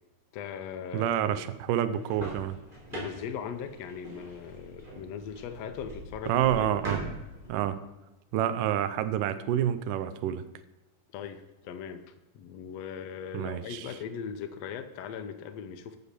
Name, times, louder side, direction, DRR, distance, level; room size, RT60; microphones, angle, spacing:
voice 1, 0.3-1.4 2.9-6.8 11.1-12.0 12.3-16.0, left 7 dB, 75° left, 8 dB, 1.5 m, -39 dB
voice 2, 0.9-2.6 6.3-7.0 7.5-7.8 8.3-10.4 13.3-13.9, right 11 dB, 80° right, 11 dB, 2.2 m, -28 dB
sound 1, 1.9-7.6, right 2 dB, 15° right, 3.6 m, -42 dB
8.2 x 7.3 x 6.7 m, 1.0 s
omnidirectional pair, 4.0 m